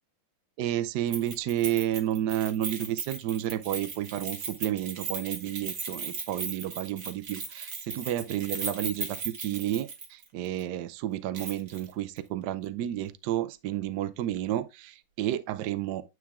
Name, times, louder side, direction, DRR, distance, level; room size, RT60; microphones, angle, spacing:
voice 1, 0.6-16.0, right 12 dB, 75° right, 0.9 m, -31 dB
Keys jangling, 1.1-10.3 10.6-10.7 11.3-11.9 12.2-12.3, right 5 dB, 45° right, 1.5 m, -37 dB
9.4 x 3.5 x 3.6 m
omnidirectional pair, 2.3 m